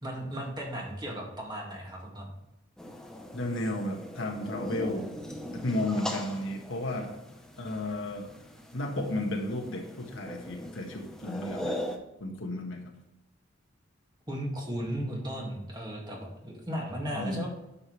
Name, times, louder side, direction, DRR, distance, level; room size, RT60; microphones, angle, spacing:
voice 1, 0.0-2.3 14.3-17.5, equal, 20° right, -2 dB, 2.1 m, -36 dB
sound 1, 2.8-12.0, equal, 5° left, 0.9 m, -40 dB
voice 2, 3.3-5.1 5.5-7.2 7.6-8.3 8.7-11.8 12.2-12.9 17.1-17.5, left 1 dB, 70° left, 2 dB, 1.5 m, -33 dB
9.8 x 7.0 x 3.2 m, 0.95 s
head